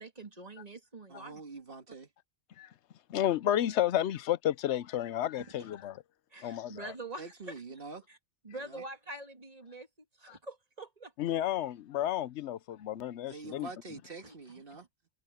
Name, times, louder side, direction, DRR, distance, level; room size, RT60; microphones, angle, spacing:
voice 1, 0.0-1.4 5.4-5.5 6.3-7.5 8.4-9.9 10.2-11.1 14.2-14.3 14.7-14.8, right 2 dB, 30° right, 2.5 m, -45 dB
voice 2, 1.1-2.1 7.2-8.1 8.5-8.8 13.3-14.9, right 3 dB, 50° right, 2.0 m, -45 dB
voice 3, 3.1-6.0 6.4-6.9 11.2-13.7, left 12 dB, 70° left, 0.9 m, -31 dB
omnidirectional pair, 1.2 m